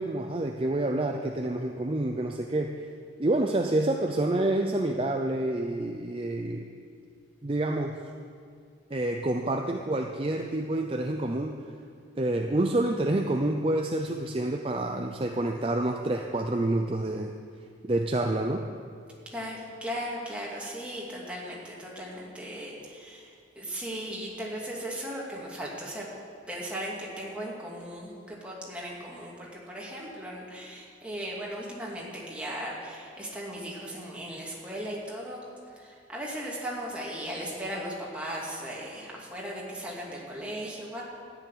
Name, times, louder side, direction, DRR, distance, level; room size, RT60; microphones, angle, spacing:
voice 1, 0.0-2.7 3.2-6.7 7.4-8.0 8.9-11.6 12.2-17.3 17.8-18.6, right 1 dB, 30° right, 3 dB, 0.5 m, -28 dB
voice 2, 19.3-26.1 26.5-35.4 35.7-41.0, equal, 5° right, -5 dB, 2.6 m, -37 dB
13.5 x 7.1 x 9.9 m, 2.3 s
head